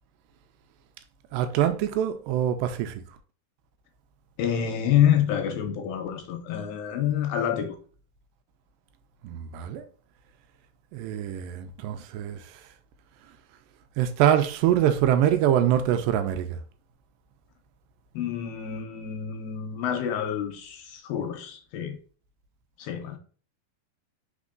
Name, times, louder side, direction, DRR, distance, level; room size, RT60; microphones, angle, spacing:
voice 1, 1.3-3.0 9.2-9.9 10.9-12.4 14.0-16.6, right 10 dB, 80° right, 2.1 m, -24 dB
voice 2, 4.4-7.8 18.1-22.0 22.8-23.2, left 9 dB, 80° left, 2.3 m, -27 dB
5.1 x 3.6 x 2.4 m
omnidirectional pair, 4.3 m